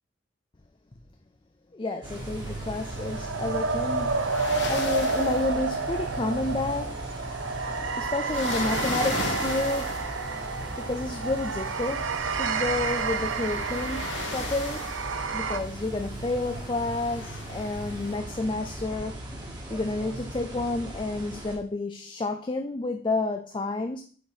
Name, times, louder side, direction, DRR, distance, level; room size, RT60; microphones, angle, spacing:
voice 1, 1.7-4.1 4.7-7.1 8.1-9.9 10.8-14.0 14.3-14.9 15.3-19.2 19.7-24.0, left 2 dB, 25° left, 0.4 m, -30 dB
sound 1, 1.9-15.6, right 4 dB, 80° right, 0.7 m, -30 dB
sound 2, 2.0-21.6, right 1 dB, 25° right, 1.8 m, -38 dB
sound 3, 2.1-18.2, left 3 dB, 65° left, 1.4 m, -39 dB
7.7 x 4.6 x 4.8 m
head